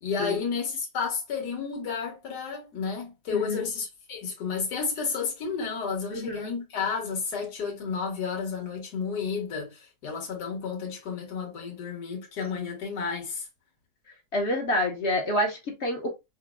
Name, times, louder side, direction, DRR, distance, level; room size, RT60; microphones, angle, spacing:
voice 1, 0.0-13.5, left 5 dB, 75° left, 1.8 m, -31 dB
voice 2, 3.3-3.6 6.1-6.5 14.3-16.1, left 1 dB, 50° left, 0.9 m, -28 dB
5.8 x 2.0 x 2.2 m
omnidirectional pair, 1.8 m